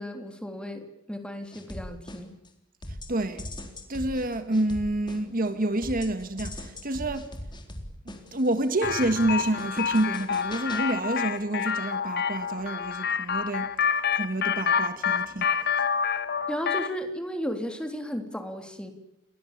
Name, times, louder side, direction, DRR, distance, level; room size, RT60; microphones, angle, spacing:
voice 1, 0.0-2.3 16.5-18.9, equal, 5° left, 3.3 m, -34 dB
sound 1, 1.5-2.5 2.8-5.5 5.8-10.9, left 1 dB, 25° left, 3.8 m, -40 dB
voice 2, 3.1-3.5 3.9-7.3 8.0-15.9, right 1 dB, 45° right, 1.6 m, -28 dB
sound 2, 8.8-17.0, left 7 dB, 55° left, 1.3 m, -28 dB
29.5 x 22.5 x 7.4 m
head